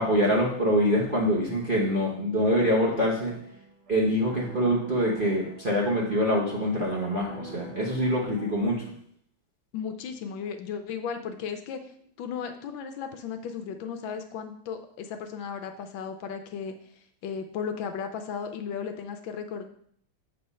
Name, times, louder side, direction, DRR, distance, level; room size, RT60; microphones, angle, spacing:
voice 1, 0.0-3.3 3.9-8.8, equal, 35° right, -5 dB, 0.8 m, -25 dB
sound 1, 3.2-8.6, right 3 dB, 85° right, 2.8 m, -46 dB
voice 2, 9.7-11.8 12.2-16.7 17.2-19.7, left 6 dB, 75° left, 6 dB, 1.3 m, -35 dB
7.6 x 3.3 x 5.5 m, 0.64 s
omnidirectional pair, 2.3 m